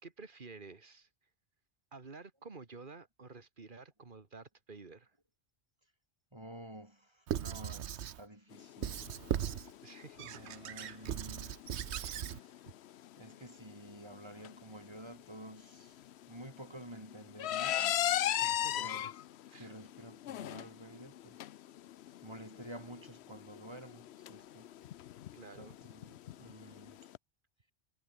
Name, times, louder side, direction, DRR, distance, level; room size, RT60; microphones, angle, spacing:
voice 1, 0.0-1.1 1.9-5.1 9.8-11.0 12.7-12.8 18.4-19.1 19.5-19.7 25.3-25.8, right 4 dB, 50° right, 2.0 m, -51 dB
voice 2, 6.3-9.1 10.2-11.6 13.2-18.1 18.7-19.1 19.5-21.5 22.2-24.7 25.6-27.1, right 1 dB, 25° right, 4.1 m, -51 dB
Squeak / Writing, 7.3-8.2 8.8-9.7 10.2-12.4, right 10 dB, 80° right, 1.1 m, -38 dB
sound 1, 8.5-27.2, left 12 dB, 75° left, 0.9 m, -39 dB
omnidirectional pair, 1.1 m